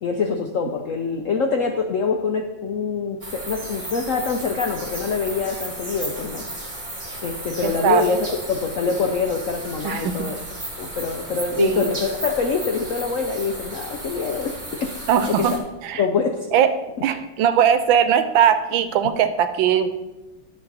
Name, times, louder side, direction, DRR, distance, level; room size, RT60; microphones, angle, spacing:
voice 1, 0.0-6.4 7.2-10.4 10.8-14.5 14.8-14.9 15.3-15.4 16.0-16.5, left 5 dB, 80° left, 4 dB, 0.7 m, -24 dB
sound 1, 3.2-15.6, right 1 dB, 20° right, 1.5 m, -34 dB
voice 2, 7.6-8.0 9.8-10.1 11.6-11.9 15.1-15.6 15.8-16.0 16.5-16.7 17.0-19.9, right 9 dB, 80° right, 11 dB, 1.4 m, -19 dB
10.5 x 6.8 x 4.1 m, 1.1 s
omnidirectional pair, 2.2 m